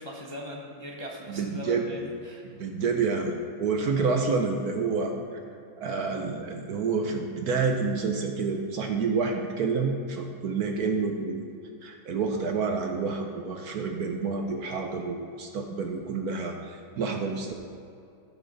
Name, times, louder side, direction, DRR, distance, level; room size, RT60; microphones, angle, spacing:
voice 1, 0.0-2.6, left 1 dB, 20° left, -2 dB, 0.8 m, -40 dB
voice 2, 1.3-1.9 2.4-3.3 3.6-5.1 5.8-11.4 11.8-17.5, right 4 dB, 60° right, 3 dB, 1.2 m, -28 dB
15.5 x 6.0 x 4.2 m, 2.5 s
omnidirectional pair, 2.0 m